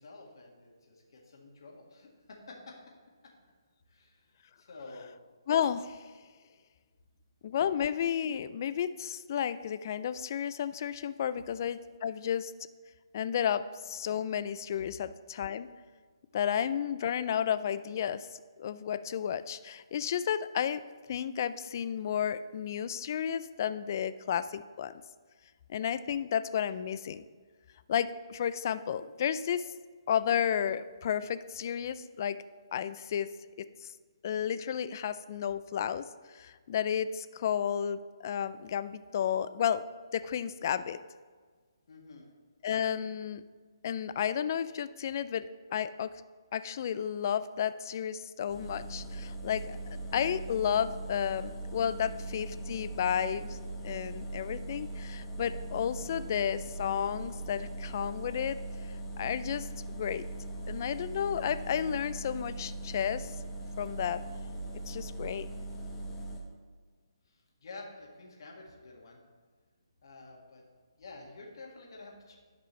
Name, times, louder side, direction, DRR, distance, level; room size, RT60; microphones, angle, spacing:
voice 1, 0.0-2.8 3.2-3.3 3.9-4.3 4.6-5.1 41.9-42.3 67.3-69.2 70.0-70.6 71.0-72.4, left 3 dB, 60° left, -1 dB, 1.9 m, -49 dB
voice 2, 5.5-6.0 7.4-12.5 13.1-15.7 16.3-18.3 18.6-20.8 21.1-24.9 25.7-27.2 27.9-29.7 30.1-32.4 32.7-33.3 33.8-33.9 34.2-39.8 40.1-41.0 42.6-43.4 43.8-45.5 45.7-46.1 46.5-58.6 59.2-60.2 60.7-63.3 63.8-64.2 64.9-65.5, left 8 dB, 40° left, 13 dB, 0.3 m, -32 dB
sound 1, 48.5-66.4, right 2 dB, 10° left, 1.0 m, -40 dB
12.0 x 5.2 x 3.2 m, 1.5 s
hypercardioid pair, 155°, 3 cm